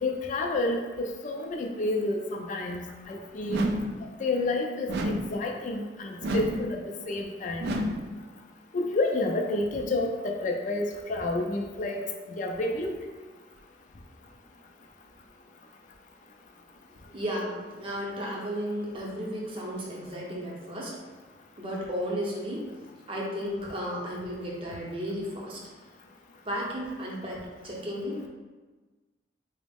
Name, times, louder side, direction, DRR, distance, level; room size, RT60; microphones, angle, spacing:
voice 1, 0.0-3.6 4.2-6.8 7.1-7.7 8.7-13.0, left 2 dB, 45° left, 2 dB, 0.4 m, -30 dB
sound 1, 3.5-4.0 4.9-5.4 6.2-6.7 7.6-8.1, right 1 dB, 65° right, 0.3 m, -29 dB
voice 2, 17.1-21.0 21.6-22.7 23.1-25.6 26.4-28.3, equal, 30° right, -4 dB, 0.7 m, -34 dB
3.8 x 2.0 x 3.4 m, 1.3 s
head